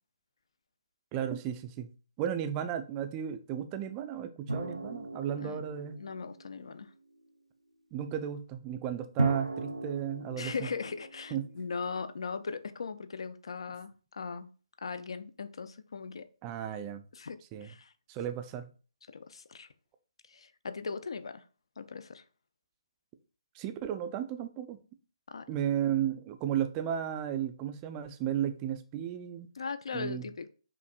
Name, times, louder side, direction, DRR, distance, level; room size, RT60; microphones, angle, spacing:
voice 1, 1.1-1.9 2.2-6.0 7.9-10.7 11.3-11.5 16.4-17.0 17.5-17.7 18.1-18.7 23.5-24.8 25.5-29.5 29.9-30.3, right 10 dB, 20° right, 8 dB, 0.3 m, -34 dB
sound 1, 4.5-6.8 9.2-12.1, right 1 dB, 85° right, 0.5 m, -37 dB
voice 2, 6.0-6.9 10.4-14.5 14.8-16.3 17.1-17.9 19.1-19.7 20.3-21.4 21.8-22.2 25.3-25.4 29.6-30.5, left 5 dB, 60° left, 11 dB, 0.4 m, -39 dB
5.4 x 2.5 x 2.2 m, 0.37 s
figure-of-eight pair, 140°, 3 cm